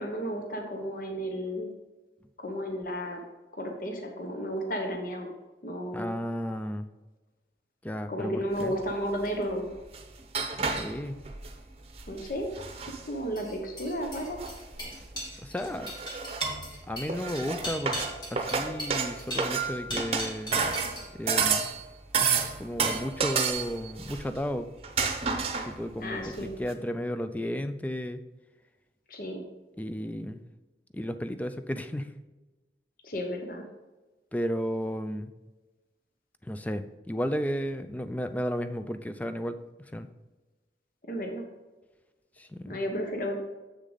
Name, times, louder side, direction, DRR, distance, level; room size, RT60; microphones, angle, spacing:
voice 1, 0.0-1.7 2.4-3.2 3.5-5.3 5.6-6.2 8.1-9.7 12.1-12.5 13.1-14.4 26.0-26.5 29.1-29.4 33.0-33.7 41.1-41.5 42.7-43.4, equal, 50° left, 2 dB, 1.0 m, -33 dB
voice 2, 5.9-6.9 7.8-8.7 10.6-11.2 15.4-15.9 16.9-18.0 18.3-20.6 21.1-21.7 22.2-24.7 25.6-28.2 29.8-30.4 30.9-32.1 34.3-35.3 36.4-40.1 42.4-42.8, equal, 10° left, 9 dB, 0.4 m, -33 dB
sound 1, 8.6-8.7 9.7-11.6 11.9-13.1 14.0-15.3 15.6-16.8 17.1-21.8 22.1-24.5 24.8-25.9 26.3-26.4 26.7-26.8, right 5 dB, 35° right, 0.8 m, -30 dB
sound 2, 12.5-21.1 21.3-21.8, equal, 25° left, 2.4 m, -39 dB
7.4 x 6.6 x 4.0 m, 1.2 s
head